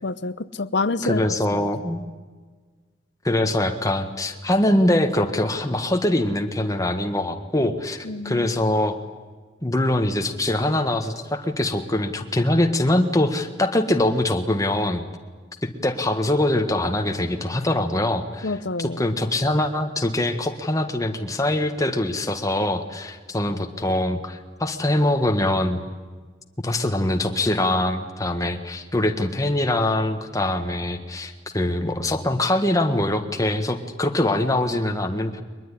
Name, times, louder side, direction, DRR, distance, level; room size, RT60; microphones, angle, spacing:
voice 1, 0.0-1.2 7.6-7.7 8.0-8.5 18.4-19.0, left 3 dB, 65° left, 16 dB, 0.9 m, -27 dB
voice 2, 1.0-2.0 3.2-9.0 9.6-15.0 15.6-25.8 26.6-35.4, left 1 dB, 20° left, 5 dB, 1.6 m, -23 dB
23.0 x 21.0 x 10.0 m, 1.4 s
head